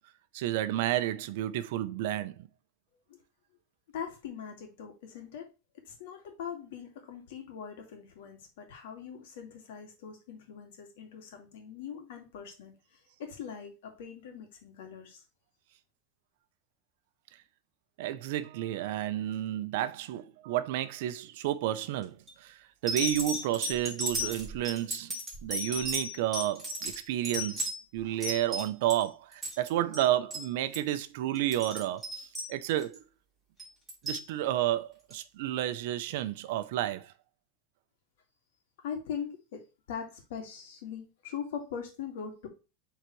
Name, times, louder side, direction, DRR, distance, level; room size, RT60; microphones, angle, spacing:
voice 1, 0.3-2.5 18.0-25.1 25.4-33.0 34.0-37.1, right 13 dB, 60° right, 0.6 m, -31 dB
voice 2, 3.9-5.5 5.9-15.2 38.8-42.5, left 7 dB, 75° left, 2.1 m, -41 dB
sound 1, 22.0-22.3 22.9-29.0 29.3-29.7 29.9-30.1 30.3-30.5 30.7-30.9 31.4-33.0 33.6-34.2 35.1-35.2, equal, 5° right, 3.3 m, -35 dB
7.9 x 4.0 x 3.1 m
supercardioid pair, 165°, 0 cm